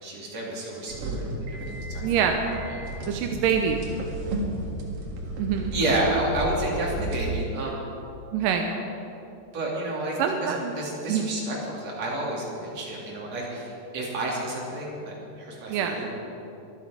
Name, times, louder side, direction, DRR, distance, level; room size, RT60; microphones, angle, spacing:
voice 1, 0.0-2.8 5.7-7.8 9.5-10.1 10.4-16.1, right 1 dB, 45° right, -4 dB, 3.7 m, -30 dB
sound 1, 0.9-7.2, right 1 dB, 60° right, 3.1 m, -33 dB
voice 2, 2.0-2.4 3.1-3.8 5.4-5.7 8.3-8.7 10.2-10.7 11.1-11.3 15.7-16.0, right 8 dB, 75° right, 4 dB, 2.0 m, -25 dB
24.5 x 8.6 x 5.1 m, 2.9 s
omnidirectional pair, 4.6 m